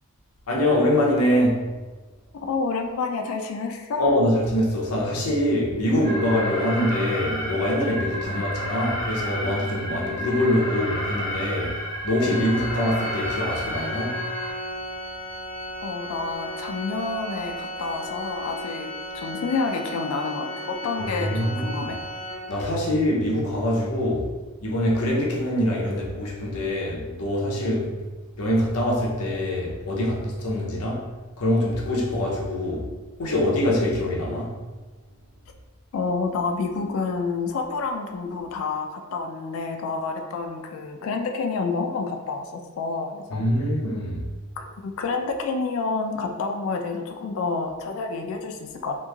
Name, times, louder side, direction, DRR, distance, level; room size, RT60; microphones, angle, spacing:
voice 1, 0.5-1.7 4.0-14.2 21.0-21.9 22.5-28.1 28.4-31.1 31.4-32.9 33.2-34.6 43.3-44.3, left 1 dB, 90° left, 0.7 m, -24 dB
voice 2, 2.3-4.1 8.3-8.5 15.8-18.9 19.1-22.0 35.9-43.4 44.6-49.0, left 4 dB, 65° left, 0.3 m, -29 dB
Alarm, 6.0-14.5, equal, 20° right, 0.7 m, -32 dB
Organ, 12.2-22.9, equal, 75° right, 0.9 m, -35 dB
3.0 x 2.5 x 2.3 m
head